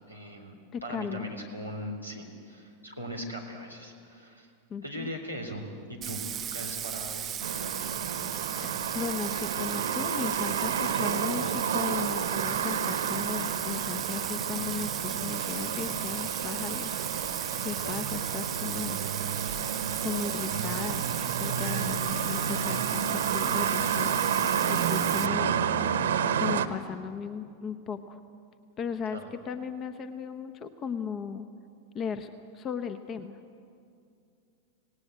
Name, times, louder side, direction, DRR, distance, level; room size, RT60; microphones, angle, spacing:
voice 1, 0.1-0.5 0.8-4.5 4.8-7.9 17.5-17.6 17.8-18.2 21.6-21.9 29.1-29.3, equal, 90° left, 2 dB, 3.6 m, -40 dB
voice 2, 0.7-1.3 4.7-5.1 8.6-8.7 8.9-17.1 17.6-19.0 20.0-21.1 21.4-25.6 26.4-28.2 28.8-31.5 31.9-33.4, left 6 dB, 30° left, 10 dB, 1.0 m, -36 dB
Bathtub (filling or washing), 6.0-25.3, right 10 dB, 25° right, 0.5 m, -36 dB
sound 1, 7.4-26.7, right 7 dB, 60° right, 1.0 m, -30 dB
26.0 x 18.5 x 8.2 m, 2.4 s
figure-of-eight pair, 90°, 0 cm